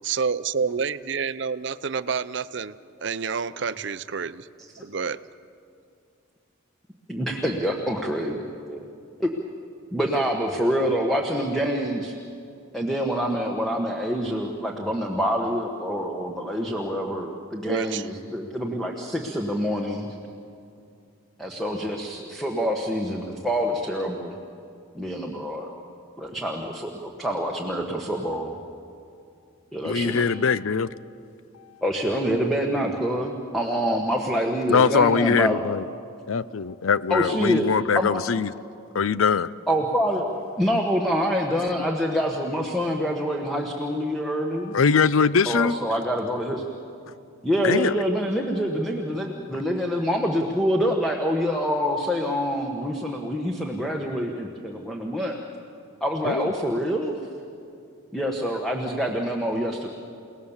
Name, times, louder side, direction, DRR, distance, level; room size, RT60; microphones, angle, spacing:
voice 1, 0.0-2.7 3.0-4.5 4.8-5.2 17.6-18.0, right 5 dB, 55° right, 0.6 m, -28 dB
voice 2, 7.1-8.4 8.7-8.8 9.2-9.3 9.9-12.1 12.7-20.1 21.4-24.4 24.9-25.7 26.2-26.9 27.2-28.5 29.7-30.3 31.8-35.6 37.1-37.7 37.9-38.1 39.7-44.7 45.5-46.6 47.4-55.4 56.0-57.2 58.1-59.9, equal, ahead, 1.3 m, -26 dB
voice 3, 29.8-30.9 34.7-35.9 36.3-38.5 38.9-39.5 41.8-41.9 44.7-45.8 47.1-47.2 47.6-48.0 56.2-56.5, left 5 dB, 75° left, 0.6 m, -22 dB
29.5 x 18.5 x 7.3 m
head